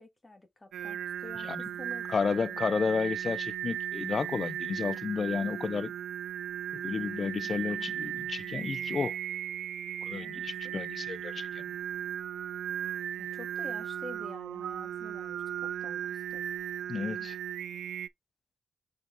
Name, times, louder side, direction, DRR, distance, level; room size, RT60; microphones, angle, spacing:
voice 1, 0.0-2.2 10.2-10.7 13.2-16.4, left 2 dB, 15° left, 1.9 m, -48 dB
Singing, 0.7-18.1, right 10 dB, 85° right, 0.6 m, -36 dB
voice 2, 2.1-5.9 6.7-9.2 10.0-11.6 16.9-17.4, left 5 dB, 40° left, 0.3 m, -32 dB
6.0 x 4.3 x 3.7 m
cardioid pair, 100°, 0 cm